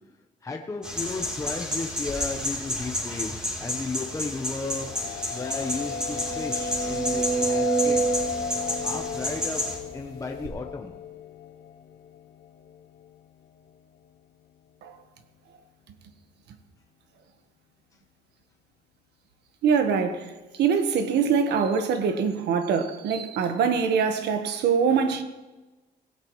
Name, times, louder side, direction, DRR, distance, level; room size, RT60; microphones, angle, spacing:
voice 1, 0.4-4.9 5.3-8.2 8.8-9.6 9.9-10.9, left 4 dB, 20° left, 1.0 m, -34 dB
sound 1, 0.8-9.8, left 1 dB, 5° right, 3.5 m, -31 dB
sound 2, 4.4-4.5 4.9-5.0 5.5-9.8 10.4-10.5, right 4 dB, 65° right, 6.5 m, -29 dB
sound 3, 4.6-13.2, left 7 dB, 75° left, 1.0 m, -35 dB
voice 2, 19.6-20.3 20.6-25.2, right 6 dB, 80° right, 1.4 m, -23 dB
25.5 x 16.5 x 3.2 m
cardioid pair, 135°, 17 cm